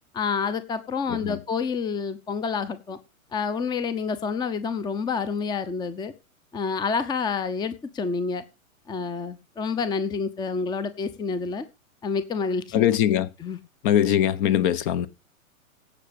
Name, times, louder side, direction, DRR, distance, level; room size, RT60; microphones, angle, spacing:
voice 1, 0.1-3.0 3.3-6.1 6.5-8.4 8.9-11.7 12.0-12.9 13.4-13.6, left 5 dB, 10° left, 0.8 m, -28 dB
voice 2, 1.1-1.4 12.7-13.3 13.8-15.1, left 11 dB, 35° left, 1.0 m, -22 dB
17.0 x 6.6 x 5.2 m
figure-of-eight pair, 115°, 42 cm